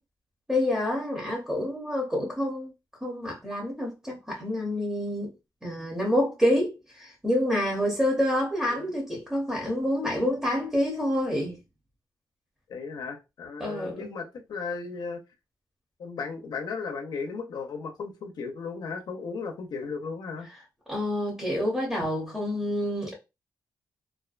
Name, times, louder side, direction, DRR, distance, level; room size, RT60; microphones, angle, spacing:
voice 1, 0.5-2.7 3.0-5.3 5.6-11.6 13.6-14.1 20.9-23.1, left 1 dB, 10° right, 0.7 m, -27 dB
voice 2, 12.7-15.2 16.0-20.5, left 4 dB, 70° left, 0.6 m, -35 dB
2.4 x 2.1 x 2.4 m
wide cardioid pair, 125°, 7 cm